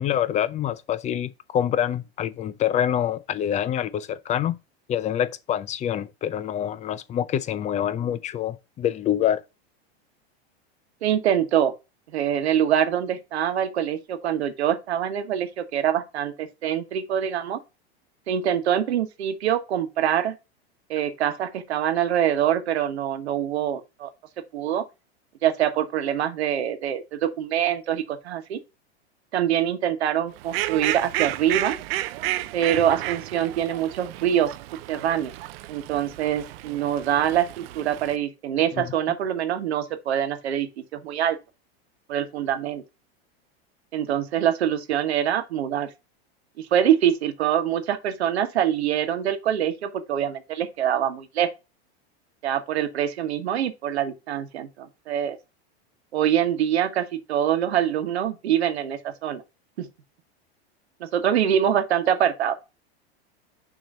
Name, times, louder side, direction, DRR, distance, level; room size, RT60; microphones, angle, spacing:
voice 1, 0.0-4.6 4.9-9.4 38.7-38.9, left 10 dB, 25° left, 0.5 m, -26 dB
voice 2, 11.0-11.7 12.1-17.6 18.3-20.4 20.9-24.1 24.5-24.8 25.4-28.6 29.3-31.8 32.5-34.5 34.9-35.3 35.7-41.4 42.1-42.8 43.9-45.9 46.6-51.5 52.4-55.4 56.1-59.4 59.8-59.9 61.0-62.5, right 10 dB, 85° right, 1.3 m, -24 dB
Fowl, 30.4-38.2, right 16 dB, 65° right, 0.5 m, -32 dB
6.3 x 3.0 x 5.3 m
supercardioid pair, 120°, 31 cm